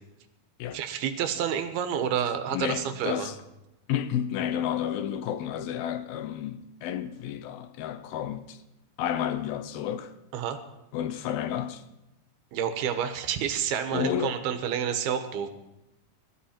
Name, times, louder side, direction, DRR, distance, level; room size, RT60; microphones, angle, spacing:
voice 1, 0.7-3.3 10.3-10.6 12.5-15.5, right 8 dB, 85° right, 3.1 m, -29 dB
voice 2, 2.5-3.4 3.9-8.6 9.0-10.1 10.9-11.8 13.9-14.4, left 10 dB, 80° left, 2.7 m, -31 dB
21.5 x 14.0 x 4.4 m
omnidirectional pair, 4.4 m